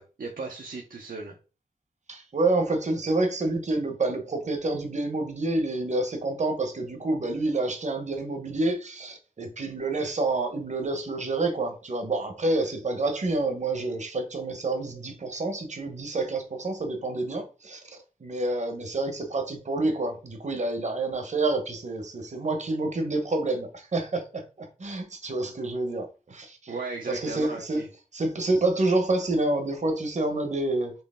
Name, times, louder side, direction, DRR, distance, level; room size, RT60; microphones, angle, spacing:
voice 1, 0.0-1.4 26.7-27.9, right 3 dB, 65° right, 0.8 m, -36 dB
voice 2, 2.1-17.8 18.2-26.7 27.1-27.8 28.1-30.9, right 2 dB, 50° right, 1.1 m, -28 dB
4.4 x 3.1 x 3.7 m
cardioid pair, 60°, 15 cm